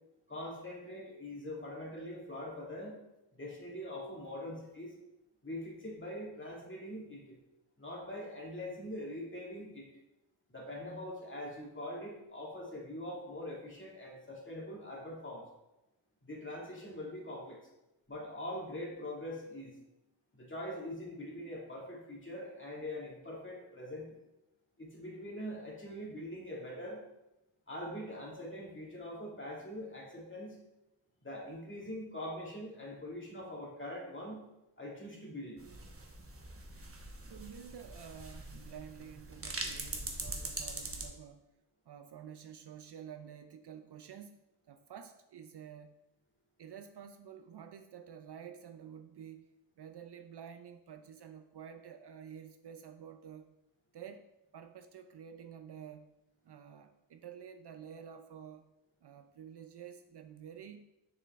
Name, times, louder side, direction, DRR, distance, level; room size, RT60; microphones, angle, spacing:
voice 1, 0.3-3.0 3.3-4.9 5.4-7.4 7.8-9.9 10.5-15.5 16.2-17.6 18.1-19.7 20.3-24.1 24.8-27.0 27.7-30.6 31.2-34.4 34.8-35.6, left 1 dB, 25° left, -3 dB, 2.0 m, -43 dB
sound 1, 35.6-41.1, right 2 dB, 30° right, 1.0 m, -43 dB
voice 2, 37.3-41.5 41.9-44.4 44.7-46.0 46.6-49.5 49.8-53.5 53.9-56.1 56.4-58.7 59.0-60.8, right 8 dB, 60° right, 7 dB, 0.5 m, -50 dB
6.6 x 5.5 x 3.5 m, 0.92 s
wide cardioid pair, 110°, 46 cm